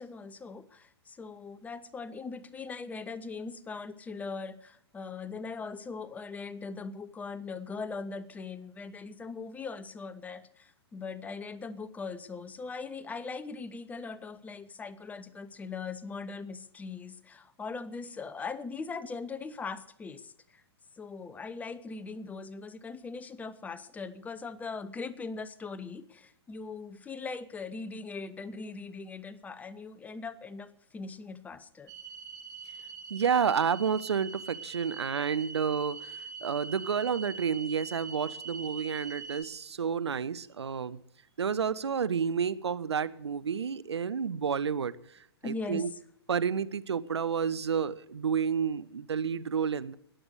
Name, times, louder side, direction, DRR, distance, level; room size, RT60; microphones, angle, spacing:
voice 1, 0.0-20.6 21.0-31.9 45.4-45.9, left 4 dB, 10° left, 17 dB, 0.6 m, -40 dB
sound 1, 31.9-39.4, right 5 dB, 25° right, 1.8 m, -43 dB
voice 2, 33.1-41.0 41.4-44.9 45.4-45.9 46.3-49.9, right 6 dB, 75° right, 15 dB, 0.9 m, -30 dB
20.5 x 8.0 x 6.6 m, 0.70 s
figure-of-eight pair, 120°, 14 cm